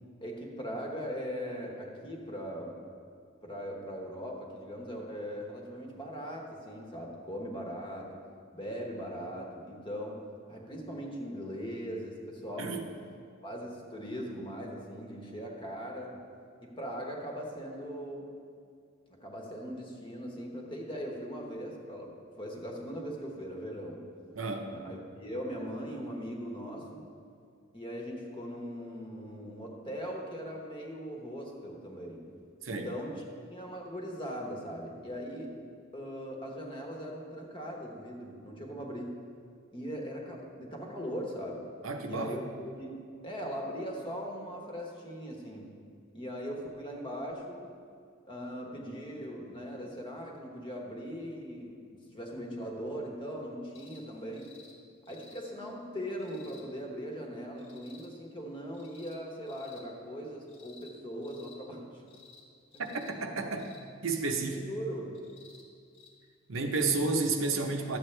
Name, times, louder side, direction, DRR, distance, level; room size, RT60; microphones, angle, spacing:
voice 1, 0.2-2.8 3.4-8.2 8.5-10.2 10.5-12.8 13.4-16.2 16.6-18.3 19.1-22.1 22.4-24.1 24.6-27.0 27.7-32.2 32.6-33.2 33.5-35.6 35.9-39.2 39.7-41.7 42.1-45.8 46.1-47.8 48.3-54.5 55.1-62.0 62.7-62.8 64.5-65.2, equal, 25° left, 0 dB, 1.1 m, -40 dB
voice 2, 24.3-24.7 32.6-32.9 41.8-42.3 62.8-63.7 64.0-64.6 66.5-68.0, right 3 dB, 80° right, 4 dB, 0.8 m, -31 dB
sound 1, 53.7-54.0 54.3-54.7 55.1-55.4 56.2-56.6 57.6-58.1 58.7-59.2 59.5-59.8 60.5-60.9 61.2-61.6 62.1-62.4 62.7-63.1 63.6-63.9 65.1-65.6 65.9-66.1 67.2-67.3, left 4 dB, 65° left, 1.5 m, -56 dB
11.5 x 7.7 x 3.3 m, 2.3 s
head